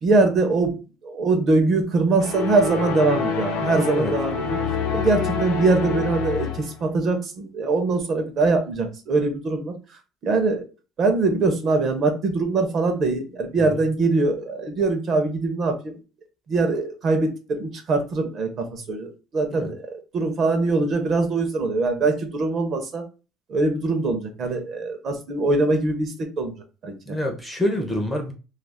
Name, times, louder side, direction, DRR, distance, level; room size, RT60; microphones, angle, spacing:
voice 1, 0.0-4.6 4.9-10.6 11.0-16.0 16.5-23.0 23.5-26.5 26.8-27.2, right 3 dB, 40° right, 0.6 m, -23 dB
sound 1, 2.2-6.8, left 6 dB, 75° left, 0.7 m, -27 dB
voice 2, 27.1-28.3, left 1 dB, 5° left, 0.5 m, -27 dB
2.4 x 2.3 x 3.3 m
cardioid pair, 155°, 0 cm